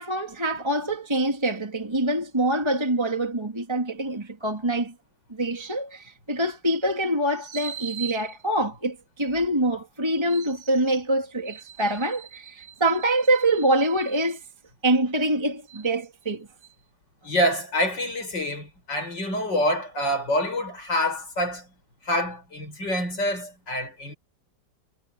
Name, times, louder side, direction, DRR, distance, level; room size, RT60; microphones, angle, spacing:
voice 1, 0.0-4.9 5.3-14.4 14.8-16.5, right 1 dB, 15° right, 2.5 m, -25 dB
voice 2, 17.2-21.7 22.0-24.1, equal, 80° left, 8.7 m, -26 dB
omnidirectional pair, 1.9 m